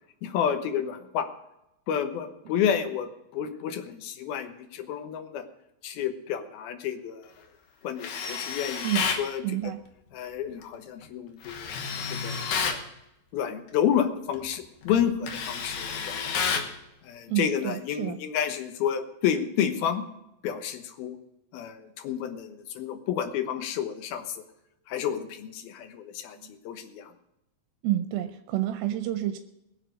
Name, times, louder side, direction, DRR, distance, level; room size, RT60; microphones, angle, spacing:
voice 1, 0.2-1.3 1.9-5.5 5.8-7.3 7.8-9.4 10.1-11.8 12.1-12.8 13.3-16.4 17.0-20.0 20.4-21.2 21.5-24.4 24.9-26.4 26.6-27.1, left 9 dB, 85° left, 8 dB, 3.0 m, -30 dB
Tools, 8.0-9.3 11.4-12.8 14.3-14.5 14.9-16.7, left 6 dB, 65° left, 2.4 m, -30 dB
voice 2, 9.4-9.8 17.3-18.2 26.4-26.5 27.8-29.4, right 13 dB, 85° right, 8 dB, 2.5 m, -29 dB
21.0 x 7.4 x 5.1 m, 0.88 s
omnidirectional pair, 4.2 m